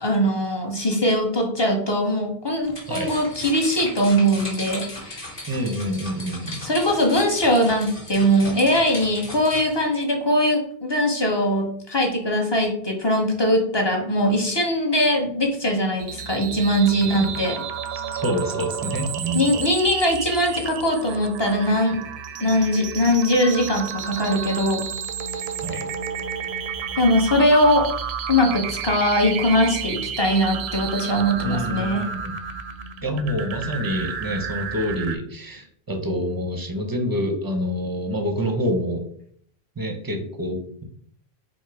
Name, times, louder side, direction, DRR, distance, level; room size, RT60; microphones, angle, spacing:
voice 1, 0.0-5.4 6.6-17.6 19.3-22.0 22.4-24.8 27.0-27.9 28.3-32.1, equal, 25° left, 1 dB, 0.8 m, -21 dB
sound 1, 2.6-9.8, left 1 dB, 55° left, 1.8 m, -37 dB
voice 2, 5.5-6.6 17.0-17.4 18.1-19.5 25.6-25.9 31.4-32.4 33.0-39.0 39.8-40.8, equal, 25° right, 3 dB, 0.6 m, -27 dB
sound 2, 16.0-35.2, right 7 dB, 80° right, 0.8 m, -31 dB
4.9 x 2.1 x 4.6 m, 0.63 s
omnidirectional pair, 1.1 m